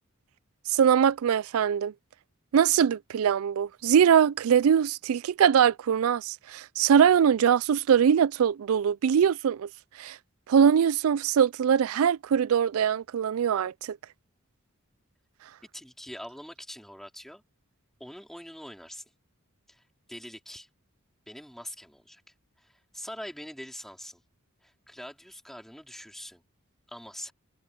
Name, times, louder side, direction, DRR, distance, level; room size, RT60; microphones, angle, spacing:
voice 1, 0.7-1.9 2.5-9.7 10.0-10.2 10.5-14.0, right 8 dB, 75° right, 0.4 m, -22 dB
voice 2, 15.7-17.4 18.0-19.0 19.7-19.8 20.1-20.7 21.3-24.2 24.6-26.4 26.9-27.3, equal, ahead, 4.1 m, -43 dB
head